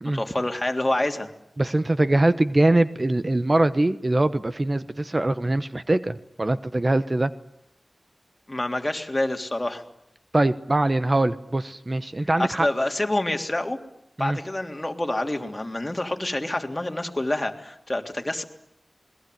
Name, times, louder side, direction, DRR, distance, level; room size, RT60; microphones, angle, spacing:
voice 1, 0.1-1.3 8.5-9.8 12.2-13.8 14.2-18.4, left 1 dB, 25° left, 4 dB, 3.4 m, -27 dB
voice 2, 1.6-7.3 10.3-12.7 14.2-14.4, right 2 dB, 40° right, 12 dB, 1.1 m, -22 dB
27.5 x 21.5 x 9.5 m, 0.79 s
wide cardioid pair, 50°, 0 cm